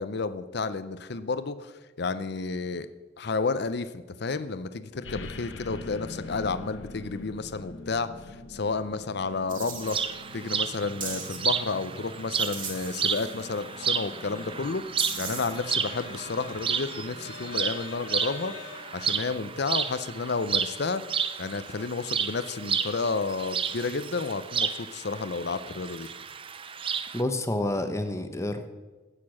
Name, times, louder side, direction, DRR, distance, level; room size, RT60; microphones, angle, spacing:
voice 1, 0.0-2.9 3.2-10.0 10.3-18.6 18.9-21.1 21.4-26.1, left 4 dB, 60° left, 13 dB, 0.6 m, -31 dB
sound 1, 5.0-19.4, left 3 dB, 75° left, 1.0 m, -44 dB
sound 2, 9.5-10.0 11.0-11.4 12.4-13.6 15.0-15.6, right 5 dB, 45° right, 2.1 m, -36 dB
sound 3, 9.8-27.2, right 7 dB, 30° right, 0.5 m, -32 dB
voice 2, 27.1-28.7, left 1 dB, 15° left, 7 dB, 0.9 m, -29 dB
16.0 x 6.7 x 6.4 m, 1.2 s
head